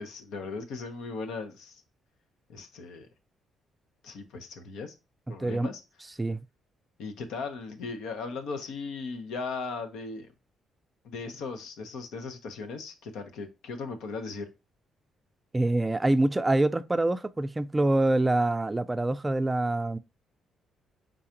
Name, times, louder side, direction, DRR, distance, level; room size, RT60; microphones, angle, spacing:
voice 1, 0.0-1.8 2.5-3.1 4.0-4.9 5.3-5.8 7.0-10.3 11.0-14.5, left 4 dB, 85° left, 1.0 m, -37 dB
voice 2, 5.4-5.7 6.2-6.4 15.5-20.0, right 2 dB, 15° right, 0.4 m, -25 dB
4.8 x 3.9 x 2.9 m
cardioid pair, 90°, 0 cm